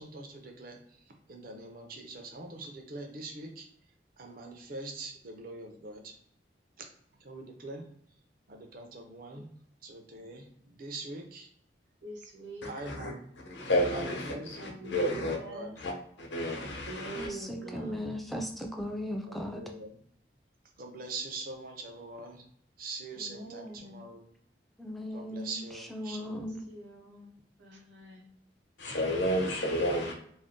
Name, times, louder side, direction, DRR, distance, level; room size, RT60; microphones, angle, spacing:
voice 1, 0.0-3.7 4.2-6.2 7.2-7.9 8.5-9.5 9.8-11.5 12.6-13.3 13.6-15.7 19.3-19.9 20.8-22.5 22.8-24.2 25.1-26.5, right 3 dB, 55° right, 4 dB, 0.6 m, -43 dB
voice 2, 12.0-12.7 14.6-15.7 16.6-18.1 23.2-24.1 26.7-28.3, right 1 dB, 90° right, 0 dB, 0.9 m, -45 dB
voice 3, 13.5-15.4 15.8-15.9 16.2-17.3 28.8-30.2, equal, 80° left, 0 dB, 0.8 m, -31 dB
voice 4, 17.2-19.6 24.8-26.6, left 1 dB, ahead, 2 dB, 0.3 m, -37 dB
2.6 x 2.1 x 3.5 m, 0.68 s
head